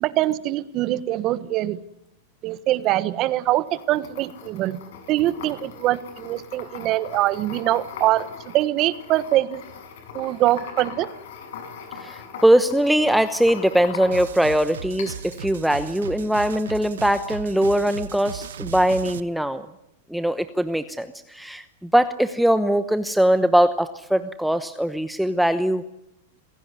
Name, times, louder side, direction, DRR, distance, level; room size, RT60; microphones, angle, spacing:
voice 1, 0.0-1.8 2.4-4.8 5.1-8.3 8.5-9.6 10.1-11.1, right 15 dB, 35° right, 16 dB, 1.3 m, -23 dB
sound 1, 3.5-14.5 15.0-15.4, left 6 dB, 70° left, 7.0 m, -40 dB
voice 2, 11.9-19.7 20.1-25.8, right 1 dB, ahead, 11 dB, 1.0 m, -21 dB
sound 2, 14.1-19.2, right 8 dB, 90° right, 1.3 m, -36 dB
27.0 x 16.5 x 9.7 m, 0.84 s
supercardioid pair, 140°, 0 cm